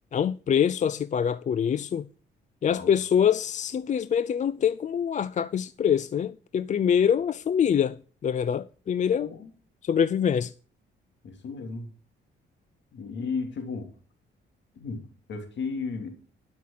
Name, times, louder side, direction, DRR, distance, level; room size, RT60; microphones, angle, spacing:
voice 1, 0.1-2.1 2.6-9.3 9.8-10.5, left 8 dB, 40° left, 0.4 m, -25 dB
voice 2, 9.2-9.5 11.2-11.9 12.9-13.9 14.7-16.1, left 4 dB, 65° left, 3.1 m, -34 dB
12.0 x 5.9 x 7.5 m
cardioid pair, 90°, 20 cm